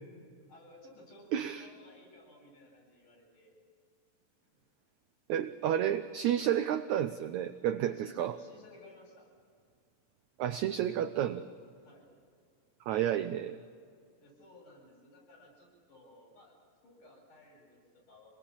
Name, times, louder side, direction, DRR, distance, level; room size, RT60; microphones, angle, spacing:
voice 1, 0.1-3.5 4.4-4.6 7.9-9.3 11.8-12.1 14.2-16.6 16.8-18.3, left 1 dB, 60° left, -3 dB, 9.5 m, -57 dB
voice 2, 1.3-1.7 5.3-8.3 10.4-11.4 12.9-13.6, right 10 dB, 85° right, 10 dB, 1.6 m, -31 dB
26.5 x 20.0 x 7.3 m, 2.2 s
omnidirectional pair, 4.2 m